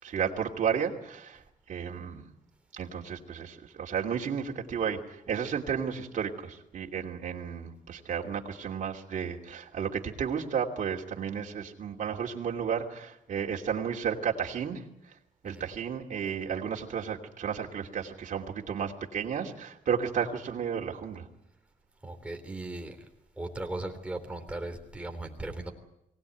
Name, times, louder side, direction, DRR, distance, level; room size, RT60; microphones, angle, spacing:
voice 1, 0.0-2.3 2.7-15.2 15.4-21.3, right 7 dB, 60° right, -1 dB, 2.9 m, -33 dB
voice 2, 22.0-23.0 23.4-25.7, right 2 dB, 10° right, 4 dB, 3.6 m, -37 dB
23.5 x 18.5 x 9.3 m, 0.84 s
wide cardioid pair, 135°, 14 cm